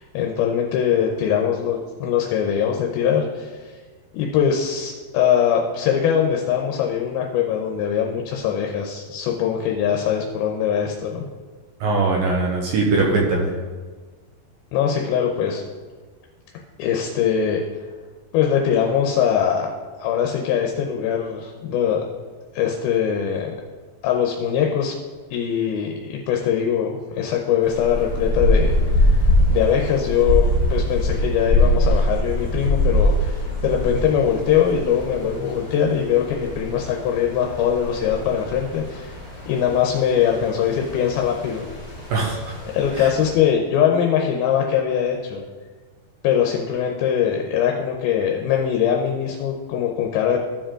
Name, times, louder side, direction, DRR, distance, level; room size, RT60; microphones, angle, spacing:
voice 1, 0.0-3.7 4.1-11.2 14.7-15.6 16.8-17.6 18.3-19.7 20.0-22.0 22.5-23.5 24.0-24.9 25.3-29.2 29.5-39.2 39.5-41.6 42.6-45.4 46.2-50.4, left 8 dB, 80° left, 1 dB, 2.4 m, -22 dB
voice 2, 11.8-13.5 42.1-42.5 43.0-43.1, right 3 dB, 70° right, -1 dB, 2.4 m, -21 dB
sound 1, 27.6-43.3, left 1 dB, 15° right, 0.9 m, -23 dB
14.0 x 4.9 x 3.7 m, 1.4 s
omnidirectional pair, 4.7 m